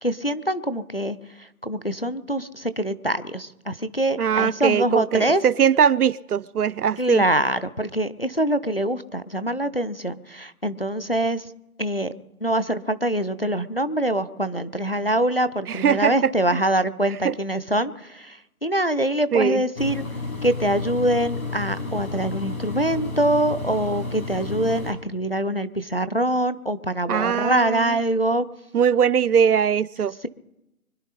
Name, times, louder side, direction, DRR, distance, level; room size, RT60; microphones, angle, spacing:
voice 1, 0.0-5.4 7.0-11.5 11.8-12.1 12.4-20.0 20.4-28.5, right 1 dB, 40° left, 0.5 m, -24 dB
voice 2, 4.2-7.2 15.7-16.3 17.2-17.3 19.3-19.6 27.1-28.0 28.7-30.2, right 7 dB, 80° right, 0.6 m, -21 dB
Engine, 19.8-24.9, left 3 dB, 70° left, 6.3 m, -31 dB
25.0 x 11.0 x 4.1 m
figure-of-eight pair, 180°, 45 cm